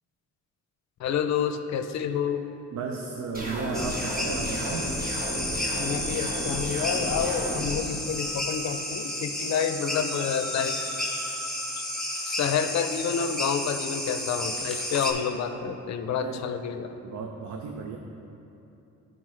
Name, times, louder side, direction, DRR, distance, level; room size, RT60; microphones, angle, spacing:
voice 1, 1.0-2.4 5.7-10.7 11.8-11.9 12.3-16.9, left 7 dB, 65° left, 8 dB, 0.6 m, -29 dB
voice 2, 2.7-4.9 16.2-16.5 17.0-18.0, right 4 dB, 70° right, 2 dB, 0.6 m, -34 dB
sound 1, 3.3-7.7, equal, 30° right, 1.4 m, -33 dB
sound 2, 3.7-15.1, left 1 dB, ahead, 1.3 m, -32 dB
11.0 x 5.2 x 3.3 m, 2.9 s
cardioid pair, 90°, 30 cm